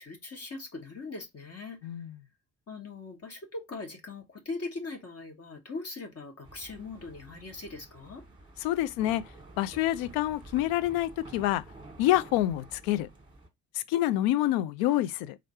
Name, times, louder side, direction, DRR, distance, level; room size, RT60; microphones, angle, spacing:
voice 1, 0.0-1.9 2.7-8.2, left 3 dB, 35° left, 1.3 m, -40 dB
voice 2, 1.8-2.2 8.6-9.2 9.6-11.6 12.0-13.1 13.7-15.4, left 14 dB, 55° left, 0.5 m, -27 dB
sound 1, 6.4-13.5, right 2 dB, 10° right, 1.4 m, -50 dB
3.8 x 3.2 x 4.1 m
figure-of-eight pair, 45°, 44 cm